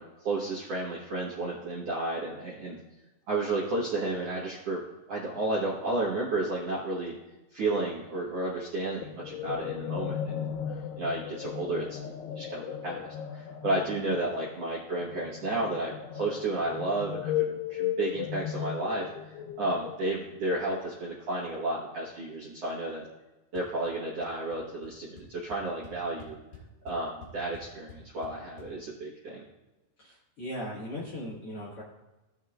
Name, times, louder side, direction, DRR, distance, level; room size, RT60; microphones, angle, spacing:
voice 1, 0.0-2.8 3.3-4.8 5.1-7.1 7.5-12.0 12.4-19.1 19.6-23.1 23.5-26.4 26.8-29.4, right 2 dB, 60° right, -6 dB, 1.8 m, -32 dB
sound 1, 9.0-20.3, left 10 dB, 90° left, 2.8 m, -36 dB
sound 2, 23.6-23.9 24.2-24.6 24.8-24.9 25.2-28.7, left 4 dB, 30° left, 3.8 m, -50 dB
voice 2, 30.0-31.8, left 1 dB, 50° left, -7 dB, 1.9 m, -38 dB
17.0 x 6.3 x 2.4 m, 1.0 s
omnidirectional pair, 4.6 m